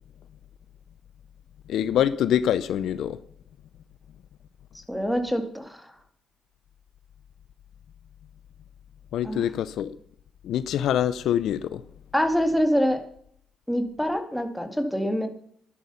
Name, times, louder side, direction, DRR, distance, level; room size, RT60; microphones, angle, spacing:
voice 1, 1.7-3.2 9.1-10.0 10.4-11.8, left 10 dB, 75° left, 0.6 m, -25 dB
voice 2, 4.9-5.8 9.2-9.4 12.1-13.0 13.7-15.3, equal, ahead, 2.1 m, -25 dB
12.0 x 11.0 x 5.6 m
cardioid pair, 90°, 0 cm